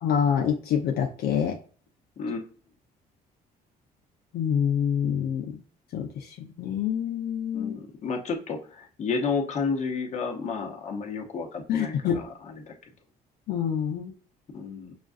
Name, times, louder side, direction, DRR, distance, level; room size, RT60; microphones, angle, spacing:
voice 1, 0.0-1.6 4.3-5.6 5.9-7.7 11.7-12.2 13.5-14.1, left 8 dB, 70° left, 2 dB, 0.7 m, -26 dB
voice 2, 2.2-2.5 7.5-12.3 12.7-12.8 14.5-14.9, left 5 dB, 45° left, 3 dB, 1.0 m, -31 dB
6.0 x 2.4 x 2.5 m, 0.41 s
cardioid pair, 110°, 17 cm